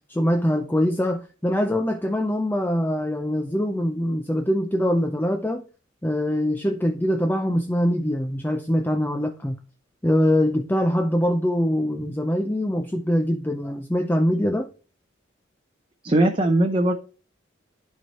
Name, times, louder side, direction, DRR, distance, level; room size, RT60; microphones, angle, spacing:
voice 1, 0.1-5.6 6.0-9.6 10.0-14.7, equal, 10° left, 0.5 m, -23 dB
voice 2, 16.0-16.9, right 1 dB, 25° right, 0.7 m, -19 dB
11.0 x 4.6 x 4.2 m
head